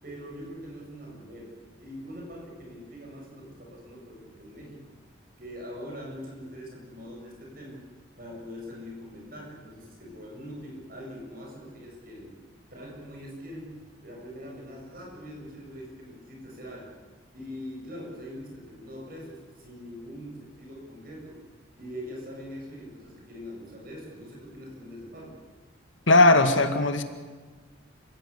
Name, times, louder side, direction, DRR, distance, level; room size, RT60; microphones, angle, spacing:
voice 1, 0.0-1.5 1.8-4.9 5.4-7.8 8.2-12.4 12.7-16.9 17.3-21.4 21.8-25.4, equal, 50° right, -1 dB, 7.5 m, -42 dB
voice 2, 26.1-27.0, left 2 dB, 75° left, 8 dB, 2.1 m, -18 dB
27.0 x 16.5 x 8.5 m, 1.4 s
head